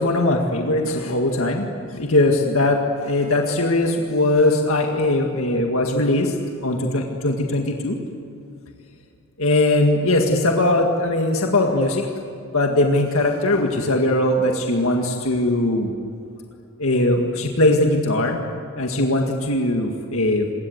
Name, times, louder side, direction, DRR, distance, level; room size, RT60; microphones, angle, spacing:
voice 1, 0.0-6.3 6.6-8.0 9.4-12.1 12.5-15.9 16.8-18.4 18.8-20.5, left 1 dB, 65° left, 2 dB, 2.0 m, -20 dB
27.0 x 22.0 x 8.1 m, 2.5 s
head